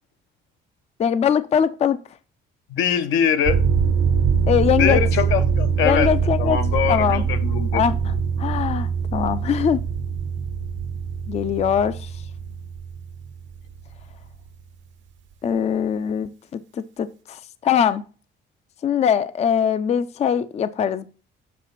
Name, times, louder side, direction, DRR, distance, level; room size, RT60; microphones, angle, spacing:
voice 1, 1.0-2.0 4.5-5.0 5.8-6.6 6.9-7.2 7.7-9.8 11.3-12.1 15.4-18.0 18.8-21.1, left 8 dB, 35° left, 0.4 m, -22 dB
voice 2, 2.7-3.6 4.8-6.1 6.4-7.8, left 8 dB, 80° left, 0.9 m, -22 dB
sound 1, 3.4-14.3, right 6 dB, 70° right, 0.9 m, -23 dB
7.5 x 4.9 x 4.0 m
cardioid pair, 115°, 20 cm